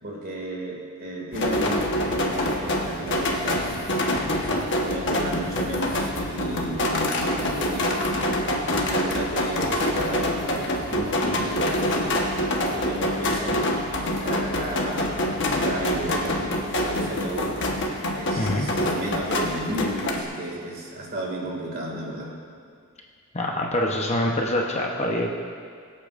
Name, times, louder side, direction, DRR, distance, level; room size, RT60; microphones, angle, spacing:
voice 1, 0.0-3.7 4.3-8.4 8.7-12.2 12.7-13.7 14.2-17.9 18.1-22.3, right 1 dB, 45° right, -2 dB, 2.2 m, -33 dB
sound 1, 1.3-20.2, left 1 dB, 55° left, 1.3 m, -26 dB
voice 2, 18.4-18.7 23.3-25.3, left 1 dB, 30° left, 0 dB, 0.9 m, -25 dB
23.0 x 8.5 x 2.5 m, 2.1 s
head